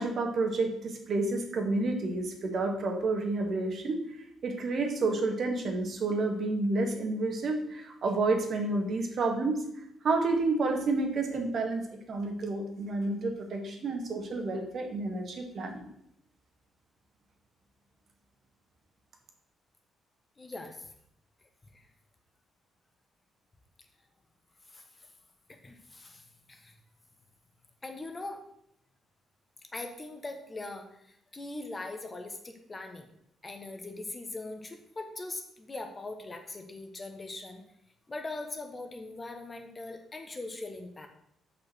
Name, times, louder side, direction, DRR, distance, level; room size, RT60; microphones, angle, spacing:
voice 1, 0.0-4.0 4.4-9.6 10.0-15.9, right 3 dB, 55° right, 3 dB, 1.8 m, -30 dB
voice 2, 20.4-20.9 21.7-21.9 24.7-24.8 25.5-26.7 27.8-28.4 29.7-33.1 33.4-37.6 38.1-41.1, left 2 dB, 25° left, 5 dB, 1.4 m, -41 dB
6.7 x 5.5 x 6.2 m, 0.74 s
cardioid pair, 90°, 0 cm